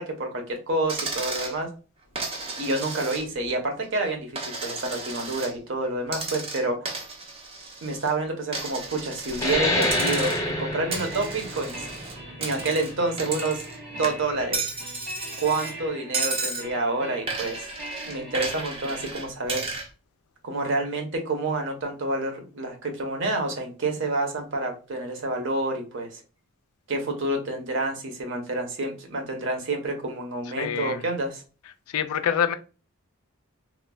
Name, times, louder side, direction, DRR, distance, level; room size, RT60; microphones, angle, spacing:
voice 1, 0.0-1.7 2.6-6.9 7.8-11.8 12.4-13.6 13.9-14.6 15.4-17.7 18.0-19.6 20.4-26.2 26.9-31.4, right 2 dB, 60° right, 3 dB, 0.7 m, -28 dB
Coin (dropping), 0.9-1.6 2.2-3.5 3.8-5.5 6.1-8.1 8.5-9.6 9.8-10.5 10.9-13.8 14.0-15.7 16.1-16.7 17.3-19.9, right 3 dB, 25° right, 0.5 m, -33 dB
sound 1, 9.3-14.5, left 1 dB, 15° left, 0.6 m, -28 dB
sound 2, 10.7-19.1, right 1 dB, 85° right, 1.5 m, -41 dB
voice 2, 30.6-31.0 31.9-32.5, left 8 dB, 85° left, 11 dB, 0.3 m, -25 dB
3.1 x 2.1 x 2.2 m, 0.34 s
head